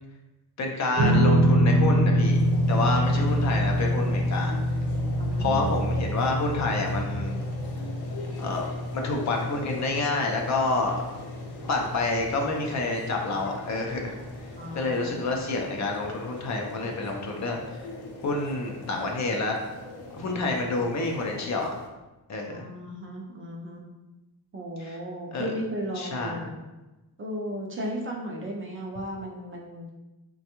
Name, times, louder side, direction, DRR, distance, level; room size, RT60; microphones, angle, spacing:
voice 1, 0.6-2.4 2.7-4.5 5.4-7.4 8.4-8.6 8.9-11.0 11.7-14.1 14.7-17.9 18.2-19.6 20.2-21.7 22.3-22.7 24.8-25.0 25.3-25.5 26.0-26.4, left 3 dB, 45° left, 1 dB, 0.5 m, -28 dB
sound 1, 1.0-13.5, equal, 50° right, 0.8 m, -26 dB
sound 2, 2.2-21.9, equal, 80° left, 0.7 m, -39 dB
voice 2, 5.2-6.0 14.6-15.3 22.5-23.8 24.5-26.6 27.2-29.9, equal, 35° right, -1 dB, 0.5 m, -35 dB
3.3 x 2.2 x 2.9 m, 1.1 s
cardioid pair, 125°, 39 cm